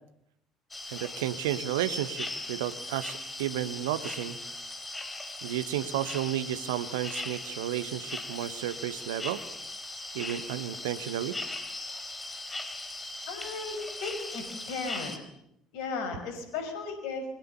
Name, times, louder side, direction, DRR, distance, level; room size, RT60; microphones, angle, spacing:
sound 1, 0.7-15.2, left 2 dB, 15° left, 4.7 m, -39 dB
voice 1, 0.9-4.4 5.4-9.4 10.1-11.4, right 12 dB, 70° right, 14 dB, 1.2 m, -32 dB
voice 2, 13.3-15.3 15.7-17.3, left 4 dB, 60° left, 8 dB, 5.7 m, -36 dB
28.0 x 23.0 x 6.9 m, 0.78 s
figure-of-eight pair, 55°, 0 cm